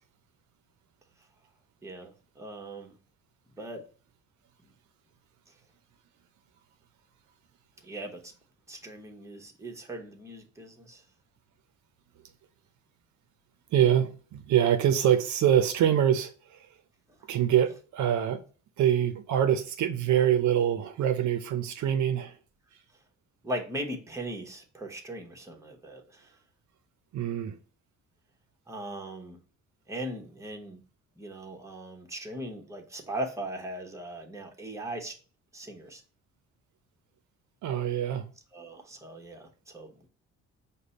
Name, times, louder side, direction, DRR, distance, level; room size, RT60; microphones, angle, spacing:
voice 1, 1.8-2.9 3.6-3.9 7.8-8.3 8.7-11.0 23.4-26.3 28.7-29.4 29.9-30.8 31.2-35.1 35.5-36.0 38.5-40.1, right 1 dB, 10° right, 1.0 m, -39 dB
voice 2, 13.7-16.7 17.3-18.4 18.8-22.4 27.1-27.6 37.6-38.3, right 10 dB, 70° right, 0.6 m, -25 dB
5.1 x 2.2 x 4.0 m
cardioid pair, 90°, 30 cm